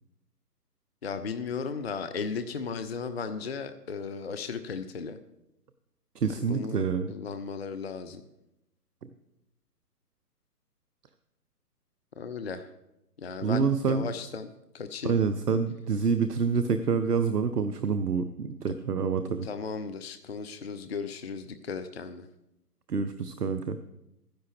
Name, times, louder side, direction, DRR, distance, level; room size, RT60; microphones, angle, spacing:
voice 1, 1.0-5.2 6.4-6.8 7.1-8.2 12.2-12.7 13.2-14.5 14.7-15.2 19.4-22.3, left 5 dB, 45° left, 10 dB, 0.5 m, -35 dB
voice 2, 6.2-7.1 13.4-14.0 15.0-19.5 22.9-23.8, right 5 dB, 75° right, 10 dB, 0.7 m, -27 dB
12.5 x 10.0 x 3.4 m, 0.88 s
figure-of-eight pair, 135°, 47 cm